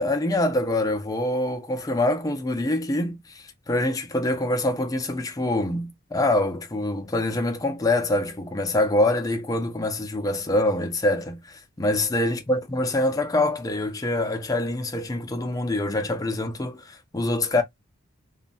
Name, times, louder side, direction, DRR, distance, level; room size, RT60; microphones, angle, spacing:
voice 1, 0.0-17.6, left 1 dB, 15° left, 0.4 m, -25 dB
3.0 x 2.2 x 2.5 m
head